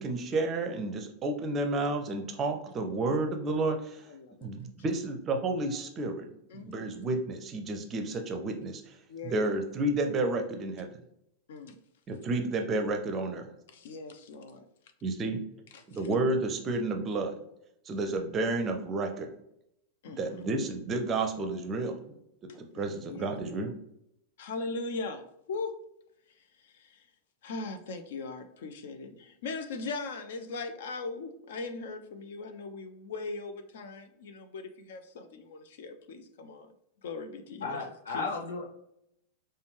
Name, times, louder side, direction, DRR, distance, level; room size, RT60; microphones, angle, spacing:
voice 1, 0.0-4.0 4.4-6.3 6.5-8.8 9.3-10.9 12.1-13.5 15.0-15.4 15.9-17.4 17.9-19.3 20.2-22.0 22.5-23.7, right 2 dB, 25° right, 4 dB, 0.5 m, -31 dB
voice 2, 4.1-4.5 6.5-7.0 9.1-9.6 11.5-11.8 13.7-14.6 15.7-16.2 20.0-20.2 22.5-23.3 24.4-25.8 26.6-27.1 27.4-36.7 37.0-38.3, left 3 dB, 55° left, 8 dB, 0.5 m, -40 dB
voice 3, 37.6-38.6, left 4 dB, 75° left, -2 dB, 1.1 m, -34 dB
5.0 x 2.2 x 3.1 m, 0.78 s
figure-of-eight pair, 90°, 0 cm